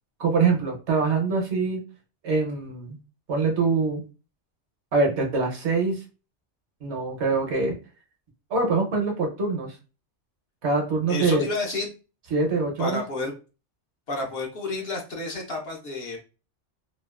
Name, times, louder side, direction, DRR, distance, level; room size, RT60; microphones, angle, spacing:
voice 1, 0.2-1.8 2.2-3.0 3.3-4.0 4.9-6.0 6.8-7.8 8.5-9.8 10.6-11.5 12.3-13.0, right 4 dB, 70° right, 2 dB, 1.1 m, -24 dB
voice 2, 11.1-11.9 12.8-13.3 14.1-16.2, left 2 dB, 60° left, 0 dB, 0.9 m, -30 dB
2.9 x 2.4 x 2.3 m, 0.32 s
omnidirectional pair, 1.3 m